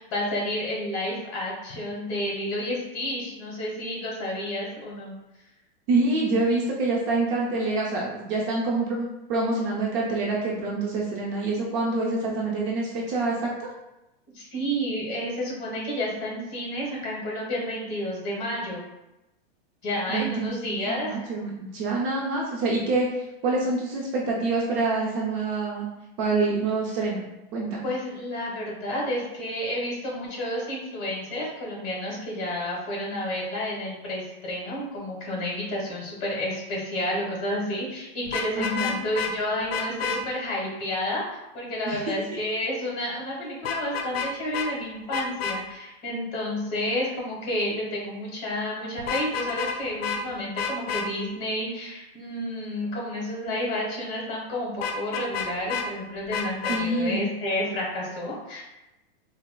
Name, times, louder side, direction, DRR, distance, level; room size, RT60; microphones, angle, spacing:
voice 1, 0.0-5.2 14.3-18.8 19.8-21.4 27.8-41.2 41.5-58.6, left 1 dB, 40° left, -2 dB, 1.2 m, -30 dB
voice 2, 5.9-13.7 20.1-25.9 26.2-27.3 27.5-27.9 38.6-39.0 41.9-42.1 56.7-57.2, right 3 dB, 30° right, -3 dB, 0.5 m, -26 dB
Vehicle horn car horn honking, 38.3-39.3 39.7-40.2 43.6-44.3 44.5-44.7 45.1-45.6 49.0-49.8 50.0-50.2 50.6-51.1 54.8-55.9 56.3-56.8, left 6 dB, 70° left, 0.6 m, -29 dB
4.4 x 2.0 x 2.2 m, 0.93 s
supercardioid pair, 145°, 31 cm